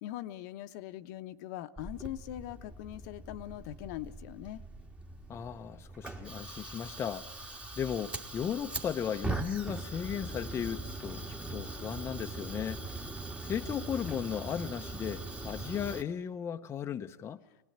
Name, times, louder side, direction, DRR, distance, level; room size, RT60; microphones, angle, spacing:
voice 1, 0.0-4.6, left 13 dB, 60° left, 1.0 m, -41 dB
Fire, 1.8-16.0, right 2 dB, 10° right, 1.6 m, -41 dB
voice 2, 5.3-17.4, left 8 dB, 25° left, 0.8 m, -36 dB
24.0 x 18.5 x 8.8 m
supercardioid pair, 125°, 10 cm